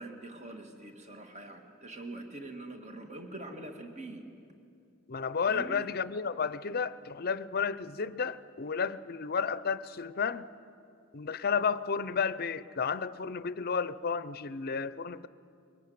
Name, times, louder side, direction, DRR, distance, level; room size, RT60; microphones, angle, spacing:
voice 1, 0.0-4.2 5.5-5.9, right 2 dB, 35° right, 4 dB, 1.9 m, -44 dB
voice 2, 5.1-10.5 11.1-15.3, left 6 dB, 50° left, 15 dB, 0.6 m, -32 dB
22.5 x 19.5 x 9.4 m, 2.5 s
head